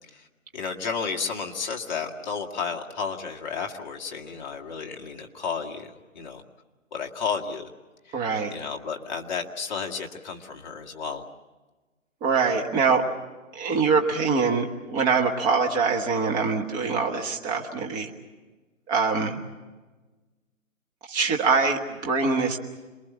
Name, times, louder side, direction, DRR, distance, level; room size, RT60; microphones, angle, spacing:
voice 1, 0.5-6.4 6.9-7.7 8.1-8.2 8.5-11.2, left 5 dB, 35° left, 1 dB, 2.2 m, -32 dB
voice 2, 8.1-8.5 12.2-13.0 13.5-18.1 18.9-19.4 21.1-22.6, right 4 dB, 10° right, 2 dB, 1.1 m, -24 dB
27.5 x 22.0 x 7.3 m, 1.2 s
hypercardioid pair, 160°, 40 cm